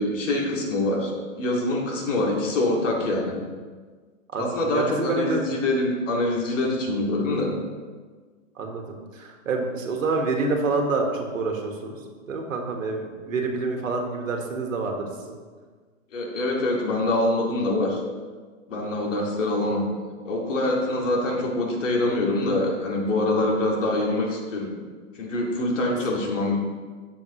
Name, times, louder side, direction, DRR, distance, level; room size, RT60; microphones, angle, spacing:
voice 1, 0.0-3.4 4.4-7.5 16.1-18.0 18.7-19.9 20.2-24.8 25.1-26.6, left 2 dB, 65° left, -1 dB, 2.4 m, -25 dB
voice 2, 4.3-5.5 8.6-12.0 12.3-15.4 19.0-19.3, right 3 dB, 75° right, 2 dB, 1.7 m, -27 dB
10.5 x 7.1 x 3.1 m, 1.5 s
hypercardioid pair, 160°, 40 cm